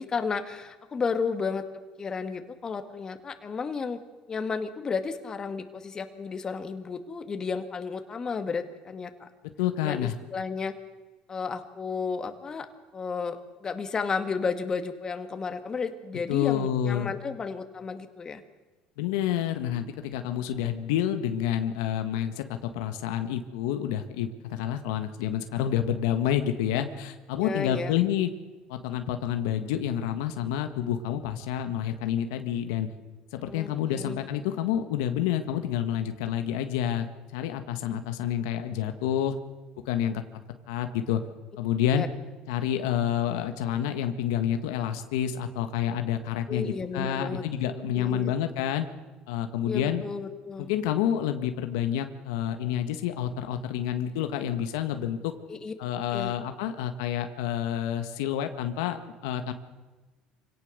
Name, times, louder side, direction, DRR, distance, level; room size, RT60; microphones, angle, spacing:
voice 1, 0.0-1.6 2.0-4.0 4.3-9.3 9.8-10.7 11.3-12.7 12.9-18.4 27.4-27.9 33.5-34.2 41.9-42.1 46.5-48.3 49.6-50.7 55.5-55.7 56.1-56.3, left 5 dB, 30° left, 8 dB, 2.1 m, -33 dB
voice 2, 9.6-10.1 16.3-17.2 19.0-28.3 28.7-32.9 33.3-37.1 37.3-39.4 39.8-40.2 40.7-41.2 41.6-42.1 42.5-48.8 49.3-50.0 50.6-55.3 55.8-59.5, left 10 dB, 90° left, 7 dB, 1.5 m, -28 dB
25.5 x 17.5 x 6.7 m, 1.2 s
supercardioid pair, 100°, 2 cm